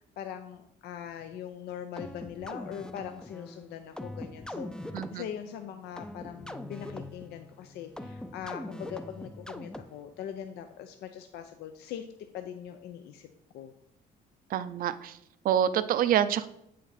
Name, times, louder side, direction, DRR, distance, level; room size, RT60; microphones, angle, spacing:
voice 1, 0.2-12.1 12.3-13.3 13.5-13.7, left 9 dB, 75° left, 8 dB, 0.5 m, -41 dB
sound 1, 2.0-10.2, left 1 dB, 5° left, 0.4 m, -42 dB
voice 2, 14.5-15.1 15.4-16.5, right 10 dB, 55° right, 13 dB, 0.5 m, -26 dB
7.8 x 5.1 x 4.2 m, 0.80 s
cardioid pair, 110°, 17 cm